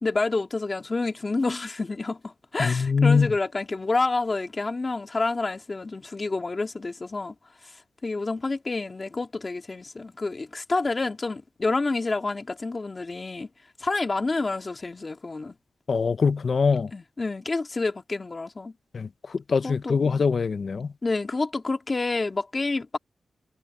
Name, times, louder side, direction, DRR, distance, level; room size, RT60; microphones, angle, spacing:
voice 1, 0.0-7.3 7.6-7.7 8.0-13.5 13.8-15.6 16.9-18.7 19.6-20.0 21.0-23.0, left 3 dB, 30° left, 2.1 m, -28 dB
voice 2, 2.6-3.3 15.9-16.9 18.9-19.1 19.5-20.9, left 5 dB, 50° left, 0.5 m, -22 dB
wide cardioid pair, 115°, 0 cm